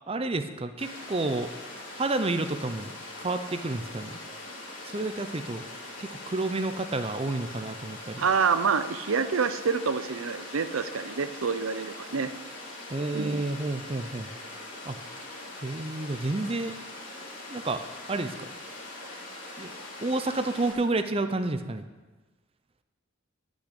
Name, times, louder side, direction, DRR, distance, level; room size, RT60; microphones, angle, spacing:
voice 1, 0.1-1.5 2.0-2.9 3.2-4.2 4.8-5.6 6.0-8.3 12.9-14.3 14.8-15.0 15.6-16.7 17.5-18.5 19.6-19.7 20.0-21.9, right 2 dB, 30° right, 9 dB, 0.6 m, -30 dB
Water, 0.8-20.7, left 2 dB, 40° left, 3.2 m, -42 dB
voice 2, 8.2-12.3 13.1-13.4, right 5 dB, 85° right, 12 dB, 0.6 m, -27 dB
12.0 x 6.4 x 8.2 m, 1.2 s
head